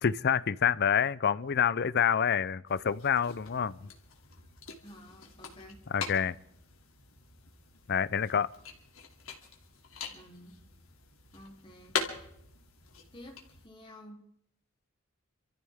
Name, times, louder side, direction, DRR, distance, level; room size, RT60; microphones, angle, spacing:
voice 1, 0.0-3.9 5.9-6.3 7.9-8.5, left 7 dB, 50° left, 0.5 m, -27 dB
sound 1, 2.7-13.7, left 5 dB, 80° left, 2.6 m, -43 dB
voice 2, 4.8-5.8 10.0-10.5 11.3-12.0 13.1-14.2, left 1 dB, 25° left, 3.1 m, -51 dB
27.5 x 14.0 x 3.6 m
head